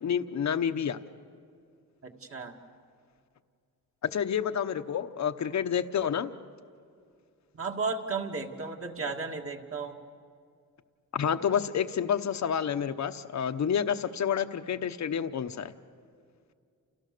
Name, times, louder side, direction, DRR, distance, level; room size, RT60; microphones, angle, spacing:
voice 1, 0.0-1.0 4.0-6.3 11.1-15.7, left 8 dB, 55° left, 10 dB, 1.0 m, -29 dB
voice 2, 2.0-2.5 7.5-10.0, right 4 dB, 40° right, 3 dB, 2.1 m, -34 dB
29.5 x 29.5 x 6.8 m, 2.3 s
wide cardioid pair, 145°, 34 cm